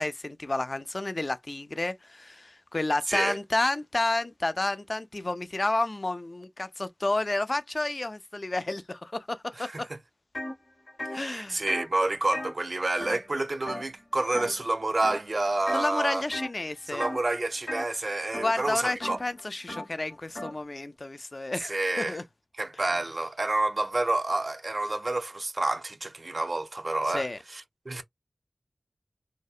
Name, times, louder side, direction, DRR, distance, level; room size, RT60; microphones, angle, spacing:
voice 1, 0.0-9.9 11.1-11.7 15.7-17.1 18.4-22.2 27.0-27.4, left 2 dB, 45° left, 0.3 m, -31 dB
sound 1, 10.3-10.5 10.9-13.4 13.7-14.0 14.3-14.7 15.0-15.8 16.3-16.6 17.0-20.6, left 1 dB, 90° left, 0.9 m, -38 dB
voice 2, 11.1-16.2 16.9-19.2 21.6-22.2 22.5-27.3 27.5-28.0, right 2 dB, 50° right, 0.4 m, -29 dB
2.7 x 2.1 x 2.3 m
wide cardioid pair, 65°, 0 cm